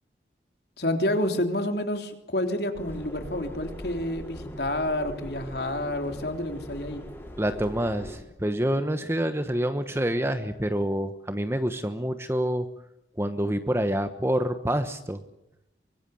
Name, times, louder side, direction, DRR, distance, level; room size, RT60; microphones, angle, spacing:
voice 1, 0.8-7.0, left 1 dB, 65° left, 6 dB, 3.4 m, -29 dB
Subway metro underground, 2.7-8.2, equal, 15° left, 5.6 m, -40 dB
voice 2, 7.4-12.7 13.2-15.2, equal, 15° right, 9 dB, 1.2 m, -27 dB
24.5 x 22.0 x 7.8 m, 0.81 s
head